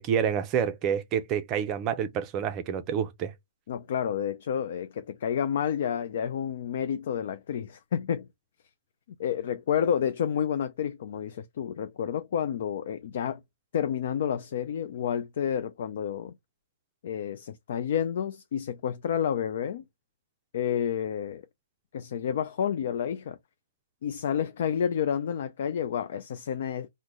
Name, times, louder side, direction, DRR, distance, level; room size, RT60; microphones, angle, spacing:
voice 1, 0.0-3.3, right 8 dB, 20° right, 0.5 m, -28 dB
voice 2, 3.7-8.3 9.2-13.4 13.7-16.3 17.0-19.8 20.5-21.4 21.9-23.4 24.0-26.9, left 8 dB, 55° left, 0.4 m, -30 dB
3.8 x 2.1 x 3.0 m
hypercardioid pair, 165°, 0 cm